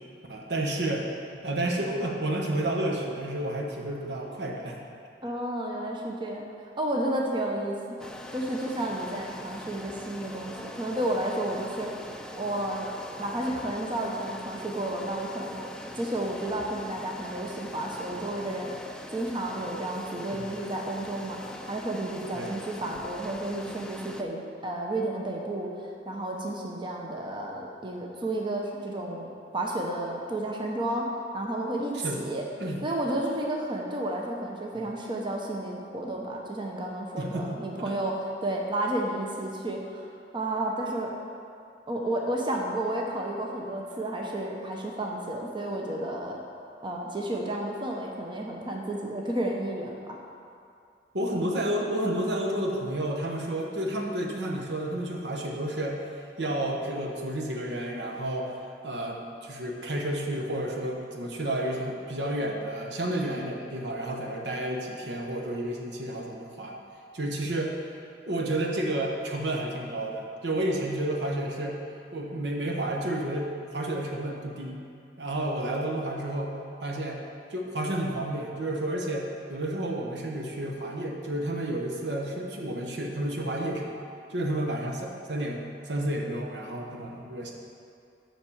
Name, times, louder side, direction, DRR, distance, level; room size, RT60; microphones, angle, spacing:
voice 1, 0.3-4.8 22.3-22.5 32.0-32.2 32.6-32.8 37.2-38.0 51.1-56.0 56.4-58.5 58.8-66.7 67.1-67.7 68.3-71.8 72.1-74.8 75.2-76.5 76.8-77.2 77.5-83.9 84.3-87.5, right 1 dB, 75° right, 0 dB, 1.1 m, -31 dB
voice 2, 5.2-6.4 6.8-11.9 12.4-12.9 13.2-15.7 15.9-18.7 19.1-21.4 21.7-29.3 29.5-31.0 31.3-32.4 32.8-38.1 38.4-40.1 40.3-41.1 41.9-46.4 46.8-50.2, right 1 dB, 30° right, -1 dB, 0.8 m, -31 dB
sound 1, 8.0-24.2, left 1 dB, 5° left, 0.4 m, -42 dB
7.3 x 5.8 x 7.1 m, 2.5 s
head